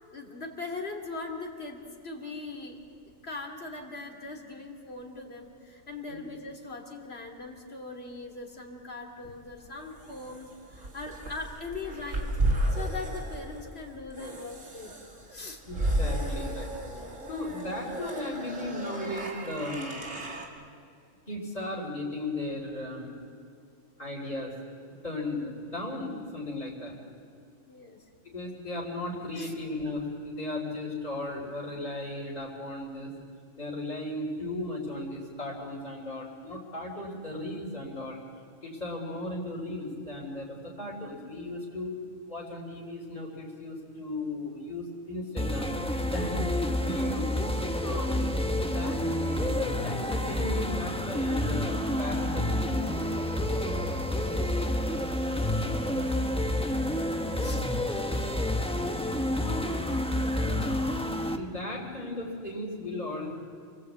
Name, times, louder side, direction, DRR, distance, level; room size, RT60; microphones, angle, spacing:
voice 1, 0.1-2.8 3.2-14.9 15.3-15.6 27.7-28.1 29.4-29.6 55.6-56.8 57.4-57.6 59.3-60.1 60.4-61.2, left 3 dB, 55° left, 1 dB, 2.9 m, -41 dB
sound 1, 9.4-20.5, right 1 dB, 80° right, 3.1 m, -33 dB
voice 2, 15.7-16.7 17.0-19.9 21.3-23.1 24.0-24.5 25.0-27.0 28.3-33.1 33.6-38.2 38.6-41.9 42.3-47.3 47.8-48.3 48.6-52.8 57.2-57.6 59.4-59.7 61.3-63.3, left 1 dB, 35° left, -6 dB, 3.6 m, -36 dB
sound 2, 45.4-61.4, left 1 dB, 5° left, 1.1 m, -29 dB
28.5 x 19.5 x 8.2 m, 2.3 s
omnidirectional pair, 1.3 m